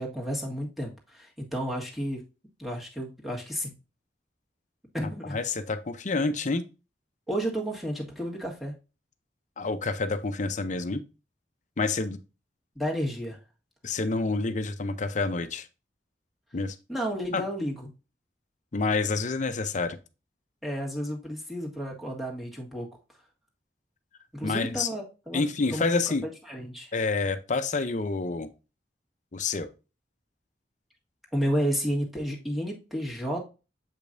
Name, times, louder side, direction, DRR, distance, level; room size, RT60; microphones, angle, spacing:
voice 1, 0.0-2.2 2.6-3.7 4.9-5.4 7.3-8.7 12.7-13.4 16.9-17.9 20.6-22.9 24.3-25.4 25.7-26.9 31.3-33.4, equal, ahead, -2 dB, 1.7 m, -32 dB
voice 2, 5.3-6.7 9.6-11.0 11.8-12.2 13.8-15.7 16.5-16.8 17.3-17.4 18.7-20.0 24.4-24.9 25.3-26.3 26.9-28.5 29.3-29.7, left 3 dB, 45° left, 10 dB, 0.7 m, -28 dB
7.5 x 5.2 x 2.7 m, 0.30 s
head